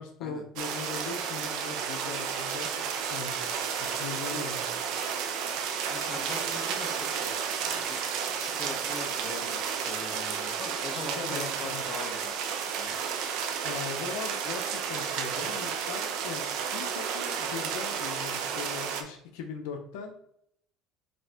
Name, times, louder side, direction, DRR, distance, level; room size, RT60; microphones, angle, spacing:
voice 1, 0.0-3.3 3.8-4.7 11.2-11.8 13.6-20.1, left 6 dB, 85° left, 4 dB, 0.7 m, -40 dB
sound 1, 0.6-19.0, right 7 dB, 70° right, 0.6 m, -32 dB
voice 2, 5.9-8.0 8.4-12.3 12.8-13.0, left 3 dB, 30° left, 2 dB, 1.0 m, -41 dB
5.1 x 2.9 x 3.5 m, 0.70 s
cardioid pair, 115°, 0 cm